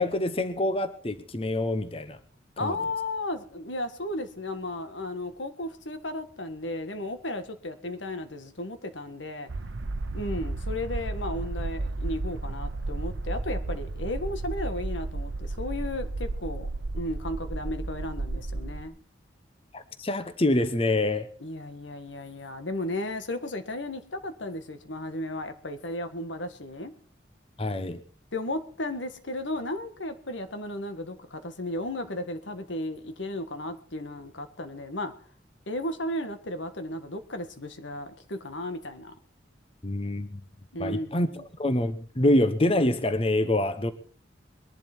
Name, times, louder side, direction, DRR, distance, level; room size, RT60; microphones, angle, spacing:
voice 1, 0.0-2.2 2.6-2.7 19.7-21.3 27.6-28.0 39.8-40.4 40.8-41.3 41.6-43.9, left 1 dB, 30° left, 0.9 m, -26 dB
voice 2, 2.6-9.5 10.1-16.7 16.9-19.0 21.4-26.9 28.3-35.1 35.7-39.1 40.7-41.4, left 1 dB, 85° left, 1.7 m, -34 dB
sound 1, 9.5-18.8, right 2 dB, 90° right, 0.8 m, -33 dB
21.5 x 11.0 x 4.5 m
head